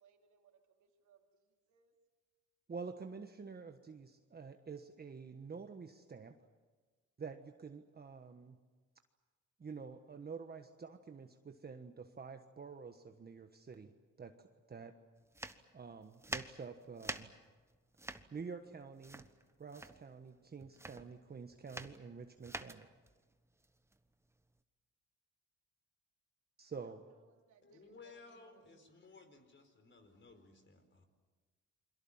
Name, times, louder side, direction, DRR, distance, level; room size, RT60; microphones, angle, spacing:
voice 1, 0.0-2.0 26.8-29.1, right 7 dB, 80° right, 3 dB, 2.9 m, -69 dB
voice 2, 2.7-6.4 7.2-8.6 9.6-14.9 15.7-17.3 18.3-19.2 19.6-22.9 26.6-27.1, right 5 dB, 30° right, 6 dB, 1.3 m, -48 dB
sound 1, 15.3-24.6, right 2 dB, 10° right, 1.2 m, -47 dB
voice 3, 27.6-31.1, left 4 dB, 40° left, 7 dB, 4.5 m, -58 dB
28.5 x 23.0 x 7.4 m, 1.4 s
cardioid pair, 90°, 30 cm